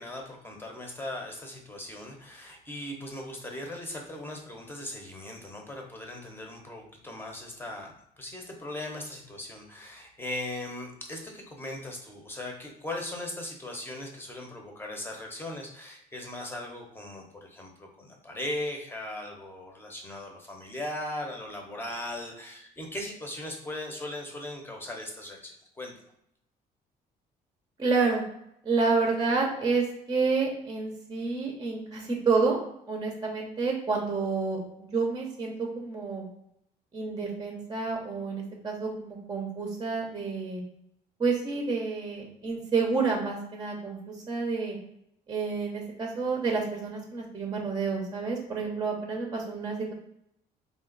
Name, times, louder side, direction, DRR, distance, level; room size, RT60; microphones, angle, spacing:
voice 1, 0.0-25.9, left 1 dB, 15° left, 1 dB, 0.9 m, -39 dB
voice 2, 27.8-28.2 28.6-32.6 32.9-36.2 36.9-40.6 41.2-44.8 45.3-49.9, right 4 dB, 25° right, 1 dB, 0.8 m, -29 dB
3.6 x 2.5 x 3.9 m, 0.76 s
cardioid pair, 110°, 17 cm